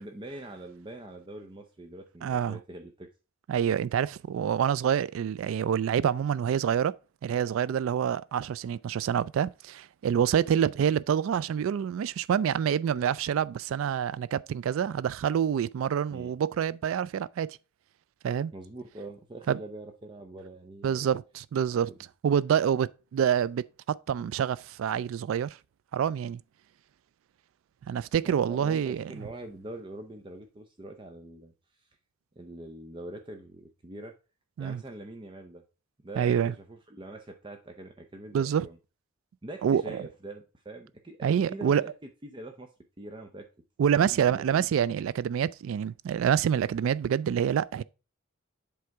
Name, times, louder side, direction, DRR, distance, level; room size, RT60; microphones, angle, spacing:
voice 1, 0.0-3.1 16.1-16.3 18.5-21.1 28.2-31.9 32.4-34.1 34.6-35.6 36.0-38.8 39.4-41.9 42.2-42.7 43.0-43.5 44.1-44.7, right 2 dB, 25° right, 0.5 m, -43 dB
voice 2, 2.2-2.6 3.5-6.9 7.2-17.5 18.2-18.5 19.5-19.6 20.8-21.9 22.2-25.5 25.9-26.4 27.9-29.0 34.6-34.8 36.2-36.5 38.3-38.7 39.6-40.0 41.2-41.8 43.8-47.8, right 8 dB, 80° right, 0.3 m, -27 dB
7.8 x 3.4 x 4.6 m
head